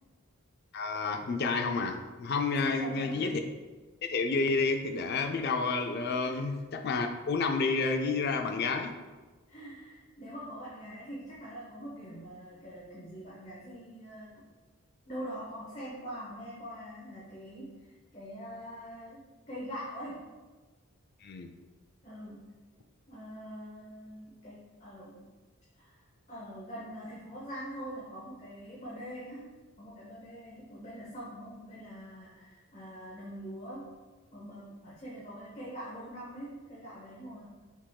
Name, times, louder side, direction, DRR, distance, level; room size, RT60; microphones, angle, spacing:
voice 1, 0.7-3.4 4.0-9.0 21.2-21.5, left 4 dB, 45° left, 5 dB, 0.4 m, -30 dB
voice 2, 2.6-3.3 6.2-6.5 9.5-14.4 15.1-20.3 22.0-22.6 23.1-25.3 25.7-26.0 26.3-29.5 29.8-33.9 34.3-37.5, equal, 30° left, -8 dB, 0.9 m, -44 dB
5.8 x 3.5 x 2.3 m, 1.3 s
head